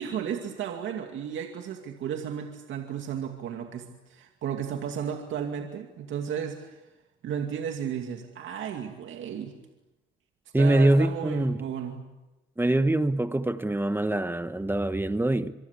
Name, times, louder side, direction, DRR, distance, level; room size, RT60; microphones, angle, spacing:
voice 1, 0.0-6.8 7.2-9.5 10.6-12.0, right 8 dB, 75° right, 2.4 m, -34 dB
voice 2, 10.5-11.6 12.6-15.5, right 1 dB, 10° right, 1.2 m, -24 dB
26.5 x 23.0 x 8.4 m
cardioid pair, 90°, 20 cm